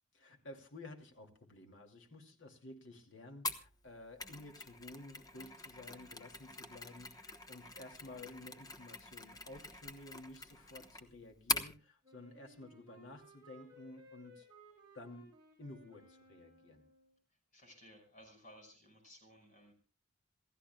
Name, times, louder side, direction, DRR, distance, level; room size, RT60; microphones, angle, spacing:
voice 1, 0.1-14.5 14.9-15.3 15.6-16.9, left 2 dB, 60° left, 3 dB, 2.6 m, -53 dB
Mechanisms, 3.4-11.7, left 3 dB, 15° left, 1.1 m, -43 dB
Wind instrument woodwind instrument, 12.0-17.1, right 1 dB, 20° right, 7.2 m, -61 dB
voice 2, 17.5-19.7, equal, 35° left, 3 dB, 5.6 m, -58 dB
28.0 x 15.0 x 2.3 m, 0.35 s
head